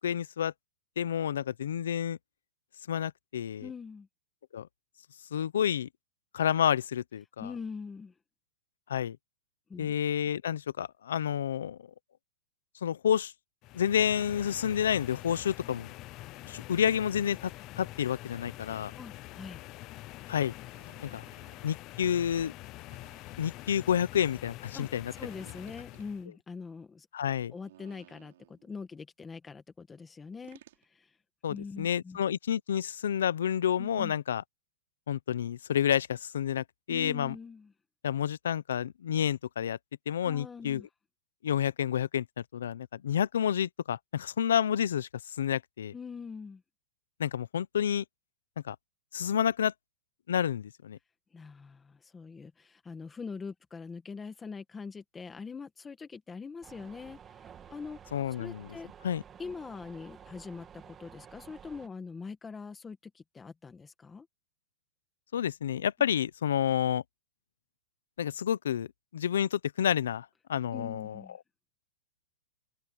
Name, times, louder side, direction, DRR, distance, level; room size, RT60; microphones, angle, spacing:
voice 1, 0.0-0.5 1.0-2.2 2.9-3.7 4.5-4.7 5.3-5.9 6.3-7.5 8.9-9.2 9.8-11.8 12.8-13.3 13.7-15.9 16.5-17.5 17.8-18.9 20.3-20.5 21.0-21.2 21.6-22.5 23.4-25.1 27.1-27.5 31.4-34.4 35.1-37.3 38.0-39.8 40.1-40.8 41.4-42.3 42.5-45.9 47.2-48.0 48.6-48.8 49.1-49.7 50.3-51.0 58.1-58.8 59.0-59.2 65.3-67.0 68.2-68.9 69.1-71.2, left 9 dB, 80° left, 0.7 m, -29 dB
voice 2, 3.6-4.1 7.4-8.1 9.7-9.9 19.0-19.6 24.7-24.9 25.1-27.1 27.5-30.6 31.0-31.1 31.5-32.2 33.8-34.1 36.9-37.7 40.2-40.9 45.9-46.6 51.3-58.0 58.4-58.9 59.4-64.3 70.7-71.4, left 5 dB, 10° left, 1.7 m, -43 dB
sound 1, 13.6-26.3, left 18 dB, 25° left, 0.4 m, -46 dB
sound 2, 20.7-21.7 22.9-23.7 25.2-26.1 27.5-28.7 30.4-30.8, right 13 dB, 55° right, 4.3 m, -58 dB
sound 3, 56.6-61.9, right 8 dB, 15° right, 1.7 m, -52 dB
supercardioid pair, 170°, 0 cm